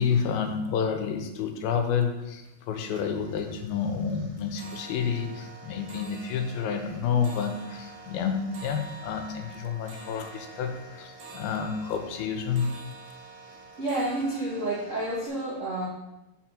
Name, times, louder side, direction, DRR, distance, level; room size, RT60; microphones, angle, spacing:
voice 1, 0.0-12.7, left 6 dB, 85° left, 5 dB, 2.6 m, -29 dB
sound 1, 0.9-1.0 1.3-1.9 2.3-2.6 2.9-15.3, right 3 dB, 50° right, 1.8 m, -47 dB
voice 2, 13.8-15.9, right 1 dB, 85° right, -8 dB, 0.6 m, -29 dB
5.9 x 4.8 x 6.0 m, 0.94 s
omnidirectional pair, 4.2 m